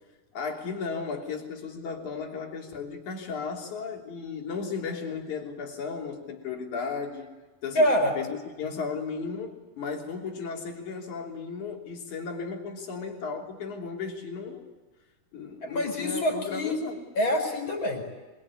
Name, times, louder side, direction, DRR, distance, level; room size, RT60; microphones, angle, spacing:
voice 1, 0.3-7.3 7.6-7.9 8.1-14.7 15.3-17.0, left 5 dB, 55° left, 2 dB, 4.5 m, -35 dB
voice 2, 7.7-8.1 15.6-16.8 17.2-18.0, left 1 dB, 30° left, 4 dB, 5.6 m, -25 dB
25.0 x 23.5 x 9.8 m, 1.3 s
omnidirectional pair, 4.1 m